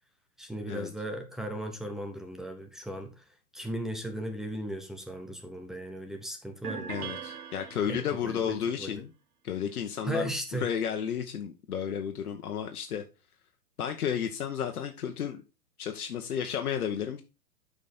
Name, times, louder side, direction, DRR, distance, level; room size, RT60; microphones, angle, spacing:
voice 1, 0.4-7.1 7.9-9.0 10.0-10.7, right 1 dB, ahead, 0.6 m, -37 dB
sound 1, 6.6-8.4, right 8 dB, 75° right, 1.1 m, -41 dB
voice 2, 6.9-9.1 9.4-13.0 13.8-15.4 15.8-17.2, left 8 dB, 75° left, 1.3 m, -32 dB
8.6 x 5.2 x 4.3 m
hypercardioid pair, 140°, 45 cm